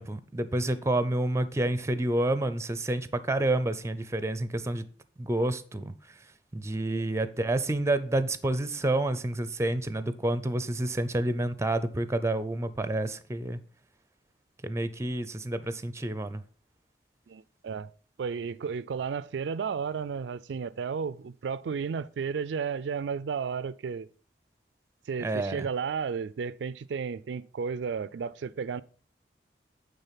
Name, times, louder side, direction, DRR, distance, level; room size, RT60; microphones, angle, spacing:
voice 1, 0.0-4.8 5.2-5.9 6.5-13.6 14.6-16.4 25.2-25.7, right 1 dB, 15° right, 0.5 m, -29 dB
voice 2, 17.3-17.9 18.2-24.1 25.1-28.8, right 6 dB, 85° right, 0.4 m, -33 dB
9.0 x 3.7 x 5.7 m
head